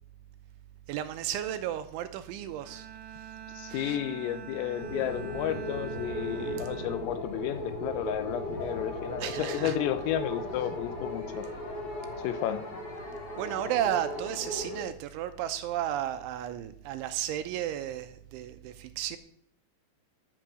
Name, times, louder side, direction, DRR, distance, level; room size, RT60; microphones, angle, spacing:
voice 1, 0.9-2.9 3.7-4.0 9.2-9.8 13.4-19.2, right 11 dB, 80° right, 9 dB, 3.0 m, -33 dB
Bowed string instrument, 2.6-8.1, right 9 dB, 65° right, 3.6 m, -45 dB
voice 2, 3.6-11.5 12.2-12.7, left 11 dB, 85° left, 12 dB, 3.7 m, -32 dB
sound 1, 4.8-14.8, equal, 25° left, 3.1 m, -37 dB
11.5 x 9.2 x 6.1 m, 0.66 s
omnidirectional pair, 5.8 m